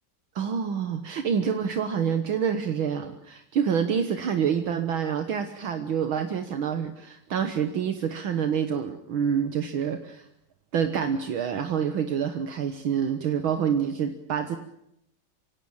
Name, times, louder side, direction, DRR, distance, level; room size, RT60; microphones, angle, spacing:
voice 1, 0.4-10.3 10.7-14.6, right 7 dB, 70° right, 7 dB, 2.0 m, -27 dB
25.0 x 17.0 x 8.9 m, 0.80 s
omnidirectional pair, 2.4 m